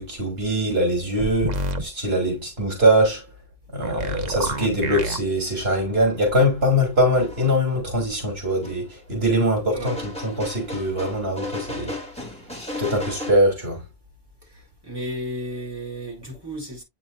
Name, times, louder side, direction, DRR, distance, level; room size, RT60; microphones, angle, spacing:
voice 1, 0.0-3.3 3.7-12.0 12.8-13.8, equal, 75° right, 3.2 m, -22 dB
sound 1, 1.2-1.8 3.8-5.2, right 2 dB, 45° right, 1.1 m, -27 dB
sound 2, 6.6-6.7 7.1-7.5 8.6-8.8 9.8-13.3, left 1 dB, 5° left, 2.9 m, -34 dB
voice 2, 9.7-10.0 14.4-16.8, equal, 20° right, 4.9 m, -34 dB
8.7 x 5.8 x 2.6 m
omnidirectional pair, 1.1 m